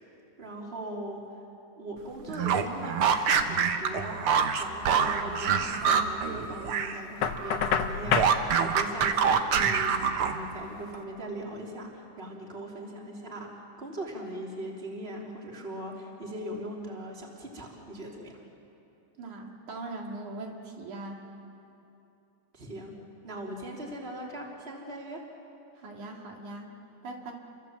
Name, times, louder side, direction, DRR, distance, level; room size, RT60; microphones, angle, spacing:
voice 1, 0.4-1.3 1.8-4.2 4.6-18.4 22.5-22.9 23.2-25.2, right 1 dB, 20° right, -1 dB, 3.3 m, -40 dB
sound 1, 2.3-7.0 7.3-10.6, right 6 dB, 60° right, 1.7 m, -26 dB
Knock, 7.2-8.4, left 7 dB, 60° left, 1.9 m, -27 dB
voice 2, 19.2-21.2 25.8-26.7 27.0-27.3, right 2 dB, 80° right, 0 dB, 3.9 m, -40 dB
28.5 x 24.5 x 7.6 m, 2.8 s
omnidirectional pair, 3.4 m